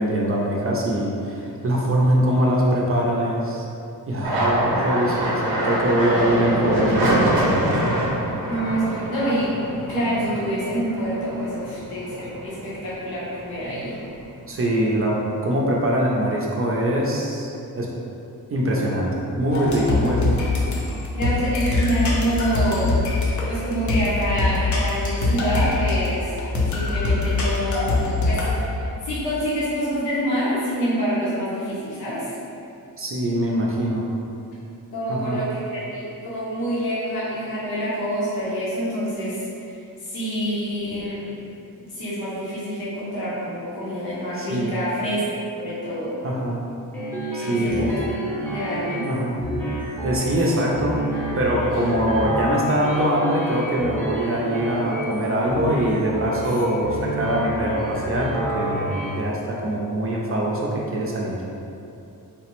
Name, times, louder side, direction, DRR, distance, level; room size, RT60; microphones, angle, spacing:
voice 1, 0.0-3.6 4.1-7.7 14.5-17.9 18.5-20.4 33.0-34.1 35.1-35.4 44.4-44.8 46.2-46.6 47.3-47.9 49.0-49.4 50.0-51.0 51.3-61.4, right 1 dB, 40° right, -3 dB, 0.5 m, -23 dB
sound 1, 4.2-13.0 13.4-14.1 14.4-15.3, right 1 dB, 90° right, 0.6 m, -25 dB
voice 2, 8.5-13.9 21.1-23.0 23.5-26.3 26.7-28.4 29.0-32.3 34.9-39.4 40.0-41.3 41.8-45.2 45.6-46.2 47.4-48.0 48.4-49.1, equal, 85° left, -9 dB, 0.9 m, -26 dB
sound 2, 19.5-28.6, left 3 dB, 55° left, 0.6 m, -23 dB
sound 3, 46.9-59.1, right 1 dB, 5° left, 0.7 m, -29 dB
3.3 x 2.0 x 2.9 m, 2.6 s
cardioid pair, 75°, 37 cm